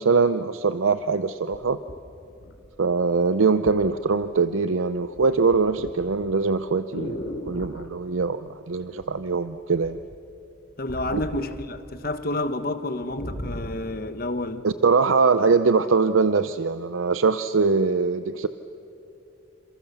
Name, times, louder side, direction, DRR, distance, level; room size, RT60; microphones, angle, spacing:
voice 1, 0.0-1.8 2.8-7.2 7.5-10.0 11.1-11.2 14.6-18.5, right 4 dB, 90° right, 0.6 m, -22 dB
sound 1, 1.5-3.0 3.7-3.9 4.2-4.7 5.0-7.9 9.0-9.5 9.8-12.1 12.4-12.5 12.8-14.0 14.6-14.7, equal, 65° left, 2.8 m, -37 dB
voice 2, 10.8-14.6, left 2 dB, 50° left, 1.4 m, -29 dB
28.5 x 27.5 x 7.0 m
head